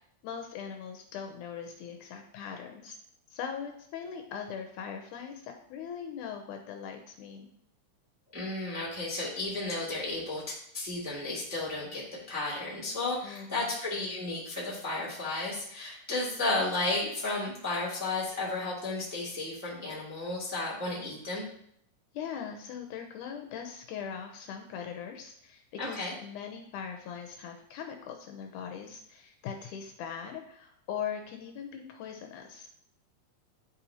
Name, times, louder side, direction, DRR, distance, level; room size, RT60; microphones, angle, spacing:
voice 1, 0.2-3.0 3.3-7.5 13.2-13.7 22.1-32.7, left 7 dB, 80° left, 4 dB, 2.0 m, -40 dB
voice 2, 8.3-10.4 10.7-12.0 12.3-21.4 25.8-26.1, left 2 dB, 10° right, -8 dB, 1.2 m, -33 dB
10.5 x 4.2 x 2.8 m, 0.69 s
omnidirectional pair, 3.8 m